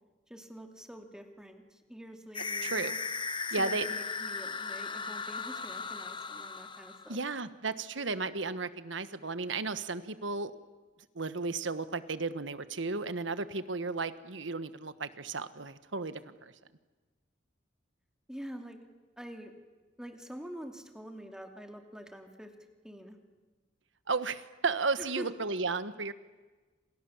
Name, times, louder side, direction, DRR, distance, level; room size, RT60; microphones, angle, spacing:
voice 1, 0.3-3.0 3.6-7.2 18.3-18.8 19.2-19.5 20.0-22.5 22.8-23.2 25.0-25.3, equal, 5° right, 4 dB, 2.7 m, -46 dB
sound 1, 2.3-7.3, left 4 dB, 25° left, 1.1 m, -37 dB
voice 2, 2.6-2.9 3.5-3.9 7.1-10.5 11.1-16.5 24.1-26.1, right 4 dB, 85° right, 13 dB, 1.4 m, -34 dB
28.5 x 27.5 x 7.3 m, 1.3 s
head